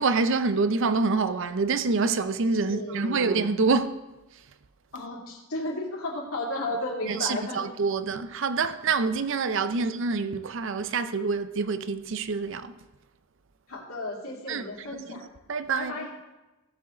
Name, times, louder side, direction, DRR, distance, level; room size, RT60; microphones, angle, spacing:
voice 1, 0.0-4.0 7.1-12.7 14.5-14.6 15.5-16.1, right 4 dB, 60° right, 0.6 m, -26 dB
voice 2, 2.7-3.5 4.9-7.6 9.8-9.9 13.7-15.2 15.7-16.1, left 2 dB, 80° left, 2.6 m, -34 dB
17.0 x 7.0 x 3.8 m
head